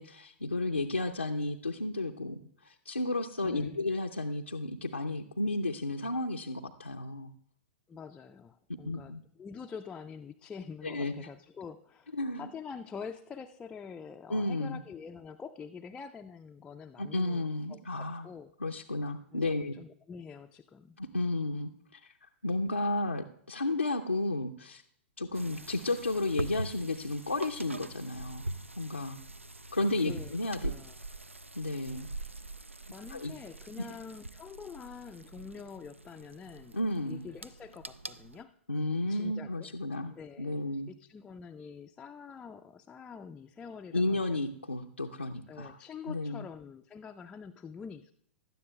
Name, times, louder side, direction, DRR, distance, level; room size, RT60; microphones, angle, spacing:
voice 1, 0.0-7.3 8.8-9.2 10.8-11.3 12.1-12.5 14.3-14.8 17.0-18.3 18.6-19.7 21.0-24.8 25.2-28.4 28.8-29.2 29.7-30.7 31.5-32.1 33.1-33.3 36.7-37.3 38.7-40.9 43.9-45.7 46.1-46.4, left 2 dB, 85° left, 2 dB, 0.5 m, -33 dB
voice 2, 3.4-3.8 7.9-17.4 17.7-18.5 19.3-21.0 30.0-30.3 30.6-30.9 32.9-36.8 37.1-38.5 39.1-39.7 40.0-40.6 40.9-44.4 45.5-48.1, left 6 dB, 10° left, 4 dB, 0.3 m, -46 dB
sound 1, 25.3-38.4, right 2 dB, 90° right, 0.4 m, -43 dB
17.0 x 12.0 x 2.2 m, 0.70 s
figure-of-eight pair, 105°, 7 cm